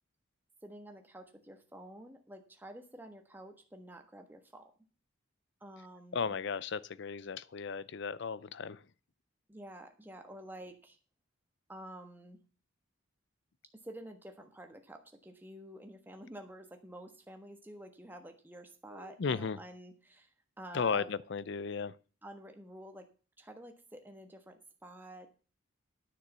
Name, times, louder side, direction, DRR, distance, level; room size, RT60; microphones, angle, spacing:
voice 1, 0.6-4.7 5.6-6.3 9.5-11.0 11.7-12.4 13.8-21.1 22.2-23.1 23.4-25.3, right 1 dB, 10° right, 1.3 m, -49 dB
voice 2, 6.1-8.8 18.9-19.6 20.7-22.0, left 5 dB, 55° left, 0.5 m, -35 dB
9.9 x 6.7 x 6.7 m
head